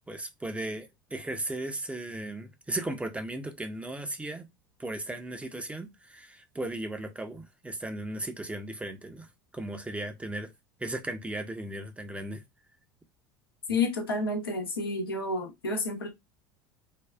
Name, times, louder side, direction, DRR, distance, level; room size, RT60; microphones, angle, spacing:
voice 1, 0.1-4.5 4.8-9.3 9.5-10.5 10.8-12.4, right 1 dB, 10° right, 0.6 m, -36 dB
voice 2, 13.7-16.1, left 3 dB, 85° left, 0.8 m, -30 dB
3.5 x 2.3 x 2.3 m
hypercardioid pair, 75°, 12 cm